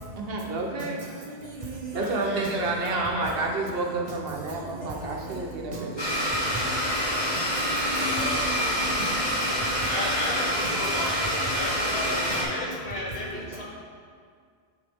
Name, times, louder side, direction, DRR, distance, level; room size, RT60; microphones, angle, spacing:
voice 1, 0.2-1.0 1.9-6.5 8.9-9.9 10.2-10.3, right 3 dB, 65° right, 0 dB, 1.0 m, -31 dB
voice 2, 1.4-2.5 4.8-5.4 5.7-5.9 7.6-9.1 10.2-12.0 12.3-12.4, right 2 dB, 45° right, 0 dB, 0.8 m, -37 dB
voice 3, 1.9-3.4 7.9-8.4 9.8-11.1 11.5-13.6, left 2 dB, 70° left, -5 dB, 1.7 m, -34 dB
Domestic sounds home sounds, 6.0-12.4, equal, 25° left, 1.5 m, -26 dB
9.8 x 4.6 x 3.5 m, 2.1 s
omnidirectional pair, 1.1 m